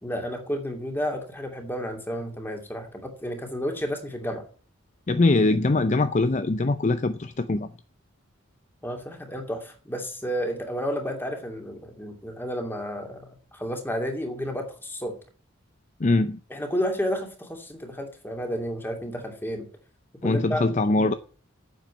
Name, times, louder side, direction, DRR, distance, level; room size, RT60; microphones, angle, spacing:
voice 1, 0.0-4.4 8.8-15.2 16.5-19.6 20.2-21.1, equal, 10° left, 2.6 m, -31 dB
voice 2, 5.1-7.7 16.0-16.4 20.2-21.1, left 2 dB, 35° left, 0.5 m, -22 dB
9.3 x 7.5 x 9.2 m
head